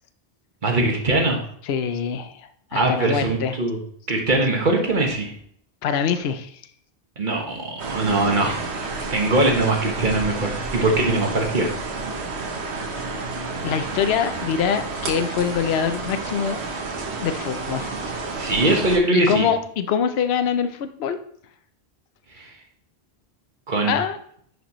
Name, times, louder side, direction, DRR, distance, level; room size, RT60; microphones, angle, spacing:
voice 1, 0.6-1.4 2.7-3.8 4.1-5.3 7.2-8.6 9.1-11.7 18.4-19.5 22.4-22.5 23.7-23.9, right 2 dB, 50° right, 1 dB, 1.5 m, -21 dB
voice 2, 1.7-3.6 5.8-6.6 13.6-16.6 17.2-18.0 19.1-21.2 23.9-24.2, left 7 dB, 70° left, 9 dB, 0.9 m, -24 dB
sound 1, 7.8-19.0, right 3 dB, 80° right, 1.2 m, -30 dB
10.0 x 5.2 x 3.0 m, 0.64 s
omnidirectional pair, 1.1 m